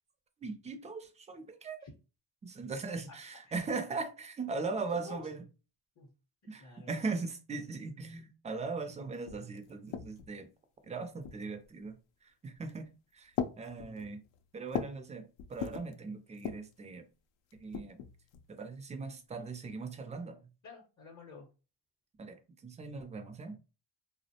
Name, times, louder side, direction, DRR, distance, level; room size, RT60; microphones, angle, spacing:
voice 1, 0.4-1.8 2.4-5.4 6.5-10.5 10.8-14.2 14.5-17.1 17.5-18.0 18.5-20.4 22.2-23.6, right 4 dB, 15° right, 0.3 m, -39 dB
voice 2, 4.5-5.3 6.0-6.1 6.6-7.0 10.8-11.0 20.6-21.5, left 4 dB, 40° left, 0.7 m, -50 dB
sound 1, 8.9-9.0 9.2-10.4 11.2-11.7 12.5-12.9 13.3-15.1 15.4-15.9 16.3-16.8 17.5-18.5, left 8 dB, 75° left, 0.6 m, -40 dB
2.4 x 2.0 x 2.7 m
cardioid pair, 95°, 46 cm